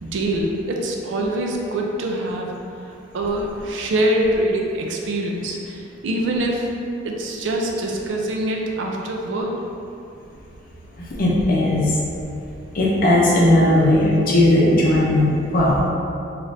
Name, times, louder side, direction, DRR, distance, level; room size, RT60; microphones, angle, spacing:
voice 1, 0.0-2.5 2.9-6.7 7.0-9.6, right 1 dB, 75° right, 0 dB, 0.4 m, -24 dB
voice 2, 11.2-12.0 12.7-15.8, left 1 dB, 50° left, -5 dB, 0.6 m, -17 dB
3.2 x 2.5 x 2.6 m, 2.7 s
head